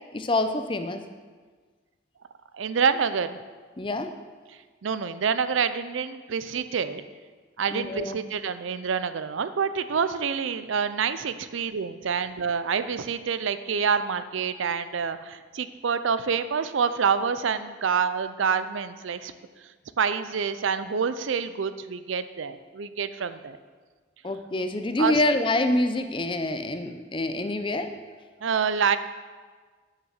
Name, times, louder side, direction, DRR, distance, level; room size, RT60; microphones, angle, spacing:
voice 1, 0.1-1.0 3.8-4.1 7.7-8.2 24.2-28.0, left 1 dB, 25° left, 8 dB, 0.5 m, -26 dB
voice 2, 2.5-3.4 4.8-7.0 7.6-19.3 20.0-23.6 25.0-25.1 28.4-29.0, right 6 dB, 75° right, 12 dB, 0.5 m, -27 dB
8.9 x 6.6 x 6.4 m, 1.4 s
head